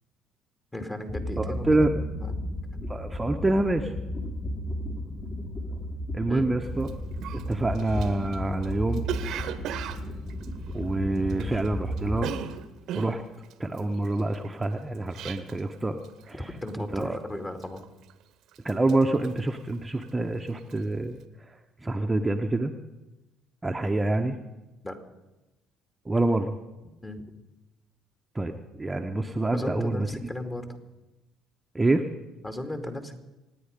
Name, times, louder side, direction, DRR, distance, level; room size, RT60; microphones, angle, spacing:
voice 1, 0.7-1.9 2.1-2.4 6.3-6.5 11.1-11.6 16.4-17.9 24.8-25.0 27.0-27.2 29.5-30.7 32.4-33.2, left 1 dB, 20° left, 7 dB, 2.5 m, -36 dB
sound 1, 1.1-12.3, equal, 35° left, 4.3 m, -34 dB
voice 2, 1.4-1.9 2.9-3.9 6.1-6.9 7.3-9.0 10.7-12.3 12.9-13.2 13.6-16.5 16.8-17.2 18.6-21.6 21.8-22.7 23.6-24.4 26.0-26.6 28.3-30.1 31.7-32.1, right 2 dB, 15° right, 4 dB, 1.1 m, -27 dB
Cough, 6.8-6.9 7.2-11.7 11.9-15.8 16.0-16.4 16.7-17.2 17.6-18.2 18.5-20.2 20.5-20.8, right 9 dB, 60° right, 1.0 m, -38 dB
27.0 x 9.6 x 5.3 m, 1.0 s
hypercardioid pair, 55°, 0 cm